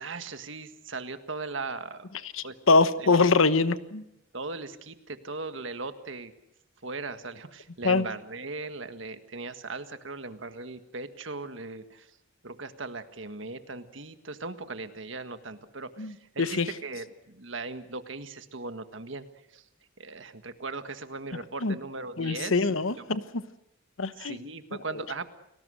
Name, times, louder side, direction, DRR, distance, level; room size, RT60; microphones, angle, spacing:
voice 1, 0.0-2.1 2.4-2.6 3.0-3.2 3.7-3.8 4.3-6.3 6.8-12.1 12.4-19.6 20.0-22.7 23.0-23.1 24.2-25.3, right 3 dB, 65° right, 9 dB, 1.7 m, -38 dB
voice 2, 2.3-4.0 7.8-8.0 16.0-16.1 16.4-16.7 21.6-21.7 22.2-23.4 24.0-24.4, left 3 dB, 80° left, 13 dB, 1.1 m, -24 dB
29.5 x 19.5 x 6.5 m, 0.84 s
head